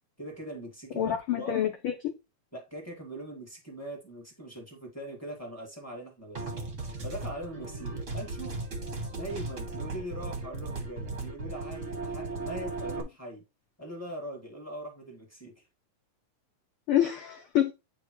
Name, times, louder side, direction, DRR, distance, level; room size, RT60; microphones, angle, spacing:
voice 1, 0.2-1.6 2.5-6.5 7.0-8.5 9.1-13.4 13.8-15.6, right 1 dB, 10° left, 1.2 m, -41 dB
voice 2, 1.0-2.1 16.9-17.7, left 11 dB, 85° left, 1.2 m, -27 dB
sound 1, 6.4-13.0, right 3 dB, 40° right, 1.0 m, -36 dB
8.9 x 3.8 x 3.0 m
omnidirectional pair, 3.5 m